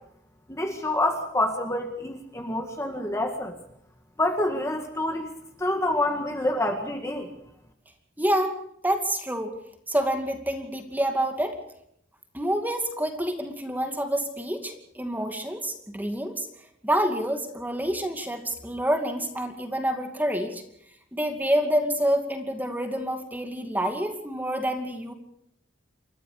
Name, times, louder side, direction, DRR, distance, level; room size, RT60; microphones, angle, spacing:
voice 1, 0.5-3.6 4.2-5.3 5.6-7.3, left 1 dB, 15° left, 3 dB, 2.0 m, -27 dB
voice 2, 8.2-8.6 8.8-9.5 9.9-11.6 12.3-16.5 16.8-20.6 21.1-25.1, right 1 dB, 10° right, 5 dB, 2.4 m, -27 dB
29.0 x 14.0 x 6.8 m, 0.73 s
head